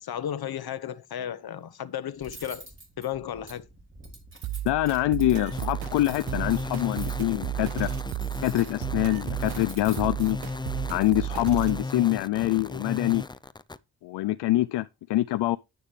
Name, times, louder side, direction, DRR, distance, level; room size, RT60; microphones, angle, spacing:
voice 1, 0.0-2.7 3.0-3.6, left 10 dB, 65° left, 1.1 m, -34 dB
Cutlery silverware, 2.2-10.9, right 2 dB, 30° right, 5.8 m, -48 dB
sound 1, 4.4-11.8, right 13 dB, 60° right, 0.5 m, -34 dB
voice 2, 4.7-7.9 8.4-10.4 10.9-13.2 14.0-15.6, left 16 dB, 80° left, 0.5 m, -25 dB
sound 2, 5.5-13.8, left 3 dB, 10° left, 0.5 m, -36 dB
10.0 x 9.4 x 3.3 m
cardioid pair, 75°, 41 cm